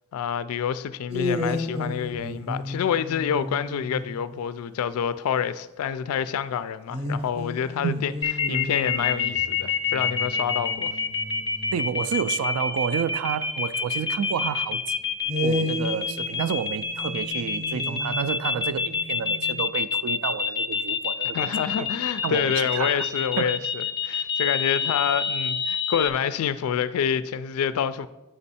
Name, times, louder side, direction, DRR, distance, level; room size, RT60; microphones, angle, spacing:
voice 1, 0.1-8.1 8.5-10.9 21.3-28.1, left 8 dB, 70° left, 0.3 m, -27 dB
sound 1, 1.1-4.4 6.9-12.3 15.3-19.6, left 1 dB, 25° right, 0.6 m, -33 dB
sound 2, 8.2-26.1, left 6 dB, 20° left, 0.5 m, -27 dB
voice 2, 11.7-14.9 15.4-21.5 21.8-21.9 22.2-23.1 23.4-23.6, right 7 dB, 70° right, 0.3 m, -30 dB
7.7 x 5.3 x 4.1 m
head